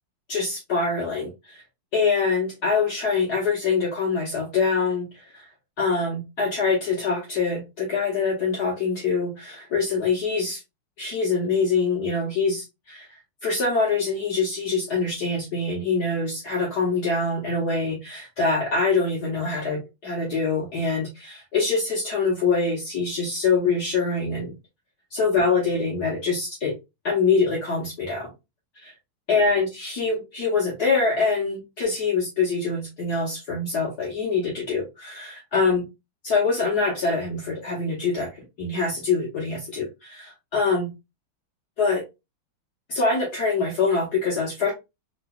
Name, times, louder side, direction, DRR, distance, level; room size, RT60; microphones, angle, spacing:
voice 1, 0.3-1.6 1.9-5.4 5.8-10.6 11.0-24.5 25.1-26.8 27.0-28.3 28.8-28.9 29.3-35.8 36.2-40.9 41.8-42.0 42.9-44.7, left 4 dB, 55° left, -3 dB, 1.4 m, -24 dB
3.8 x 3.0 x 2.2 m, 0.23 s
omnidirectional pair, 2.3 m